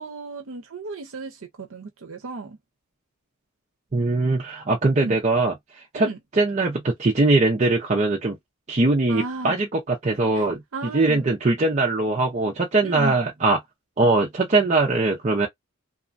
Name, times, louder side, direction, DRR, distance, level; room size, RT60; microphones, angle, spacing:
voice 1, 0.0-2.6 5.0-5.2 6.0-6.2 9.1-9.6 10.3-10.5 10.7-11.2 12.8-13.1, right 3 dB, 75° right, 0.6 m, -34 dB
voice 2, 3.9-5.5 5.9-6.1 6.3-8.4 8.7-10.6 10.9-13.6 14.0-15.5, right 2 dB, 35° right, 0.5 m, -21 dB
3.0 x 2.2 x 2.5 m
head